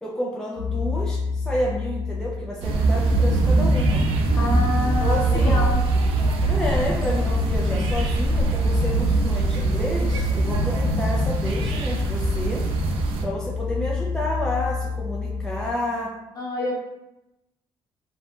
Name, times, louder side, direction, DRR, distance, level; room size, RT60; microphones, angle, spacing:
voice 1, 0.0-4.1 4.8-5.7 6.4-12.6 13.2-16.1, left 1 dB, 5° left, -3 dB, 0.4 m, -30 dB
sound 1, 0.6-15.7, left 5 dB, 65° left, 0.6 m, -29 dB
sound 2, 2.6-13.3, right 3 dB, 85° right, 0.4 m, -22 dB
voice 2, 4.3-5.8 16.4-16.7, left 1 dB, 40° left, -2 dB, 0.8 m, -27 dB
2.4 x 2.3 x 3.6 m, 0.93 s
cardioid pair, 110°, 10 cm